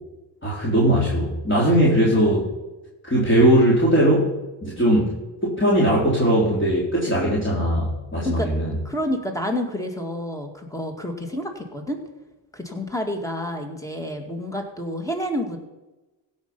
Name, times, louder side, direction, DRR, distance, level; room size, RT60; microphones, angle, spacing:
voice 1, 0.4-2.5 3.0-4.3 4.6-5.1 5.4-8.7, right 1 dB, 25° left, -6 dB, 4.0 m, -19 dB
voice 2, 8.8-12.0 12.5-15.6, equal, 5° left, 4 dB, 2.2 m, -29 dB
16.0 x 5.9 x 5.6 m, 1.1 s
cardioid pair, 75°, 46 cm